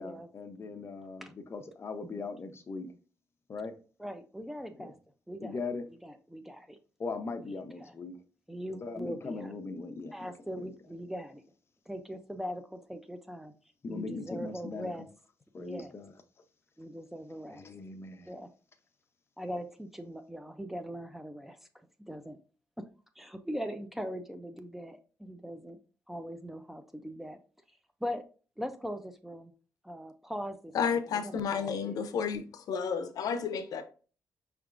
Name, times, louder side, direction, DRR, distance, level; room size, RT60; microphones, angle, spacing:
voice 1, 0.0-2.9 3.5-3.7 4.8-4.9 5.4-5.9 7.0-8.1 8.8-10.3 10.6-10.7 13.8-14.9 15.5-16.1 17.5-18.3, left 4 dB, 40° left, 0.7 m, -39 dB
voice 2, 4.0-4.9 5.3-5.6 6.0-6.8 7.4-7.9 8.5-9.5 10.1-11.4 11.9-13.5 13.9-15.1 15.6-15.9 16.8-17.6 18.3-18.5 19.4-21.6 22.1-22.4 22.8-22.9 23.2-25.8 26.1-27.4 28.0-28.2 28.6-29.5 29.8-30.7 31.1-32.2, equal, 5° right, 0.5 m, -40 dB
voice 3, 30.7-33.8, left 6 dB, 75° left, 0.6 m, -31 dB
5.7 x 3.4 x 2.5 m
cardioid pair, 105°, 6 cm